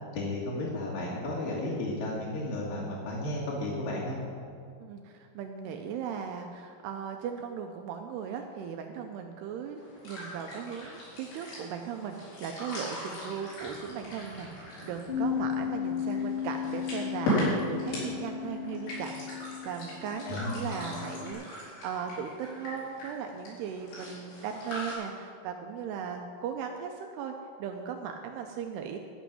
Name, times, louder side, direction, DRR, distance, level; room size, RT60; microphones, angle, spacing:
voice 1, 0.1-4.2 20.3-20.6, left 1 dB, 55° left, -6 dB, 2.9 m, -33 dB
voice 2, 4.8-29.0, right 7 dB, 85° right, 4 dB, 2.4 m, -38 dB
sound 1, 9.8-24.9, left 1 dB, 75° left, 6.2 m, -38 dB
Bass guitar, 15.1-21.3, left 8 dB, 25° right, 0.5 m, -35 dB
12.5 x 6.1 x 9.2 m, 2.2 s
omnidirectional pair, 5.4 m